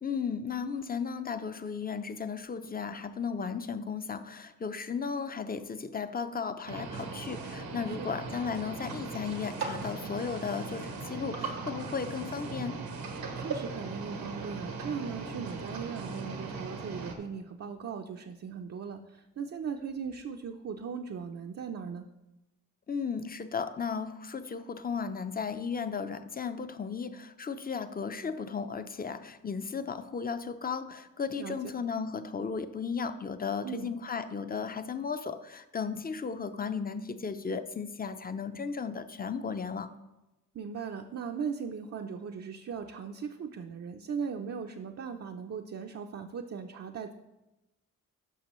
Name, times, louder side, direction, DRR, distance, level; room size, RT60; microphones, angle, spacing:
voice 1, 0.0-12.8 22.9-39.9, left 5 dB, 25° left, 11 dB, 0.6 m, -35 dB
sound 1, 6.7-17.2, right 4 dB, 90° right, 1.3 m, -38 dB
voice 2, 7.9-8.2 13.3-22.1 31.4-31.7 33.6-33.9 40.5-47.1, right 6 dB, 45° right, 3 dB, 0.6 m, -38 dB
11.5 x 5.9 x 3.1 m, 0.99 s
cardioid pair, 75°, 34 cm